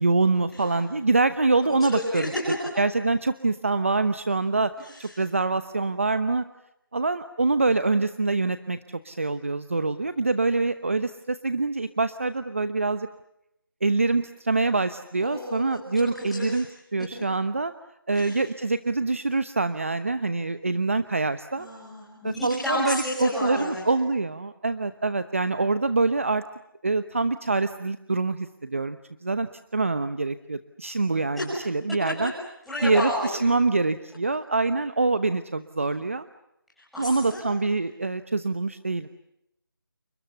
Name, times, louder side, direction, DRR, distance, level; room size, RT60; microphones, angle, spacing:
voice 1, 0.0-2.3 2.8-4.7 5.0-6.4 6.9-8.8 9.0-13.1 13.8-16.7 16.9-17.7 18.1-21.7 22.2-26.4 26.8-32.3 32.8-36.3 37.0-39.1, right 3 dB, 35° right, 12 dB, 1.0 m, -25 dB
voice 2, 1.7-2.3 4.8-5.1 15.2-16.6 18.1-18.4 21.5-23.8 31.4-31.5 32.7-33.4 36.8-37.4, left 1 dB, ahead, -10 dB, 6.6 m, -32 dB
29.5 x 29.0 x 7.0 m, 0.83 s
figure-of-eight pair, 180°, 12 cm